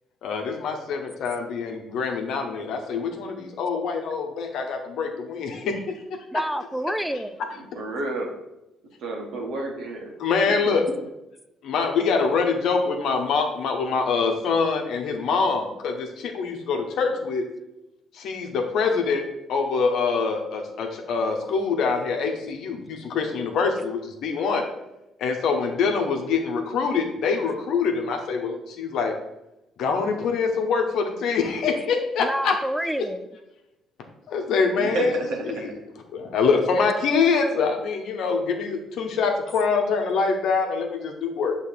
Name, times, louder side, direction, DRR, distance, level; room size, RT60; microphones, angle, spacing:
voice 1, 0.2-6.0 10.2-10.8 11.6-17.4 18.1-19.2 19.5-24.6 25.2-29.1 29.8-32.5 34.3-35.7 36.1-41.6, left 5 dB, 70° left, 3 dB, 0.9 m, -25 dB
voice 2, 6.3-7.4 32.2-33.2, equal, 5° right, 11 dB, 0.5 m, -28 dB
voice 3, 7.7-8.3 9.0-10.1 10.5-10.8 34.8-35.7, right 2 dB, 70° right, 1 dB, 1.3 m, -30 dB
6.5 x 3.2 x 4.6 m, 0.91 s
supercardioid pair, 60°, 0 cm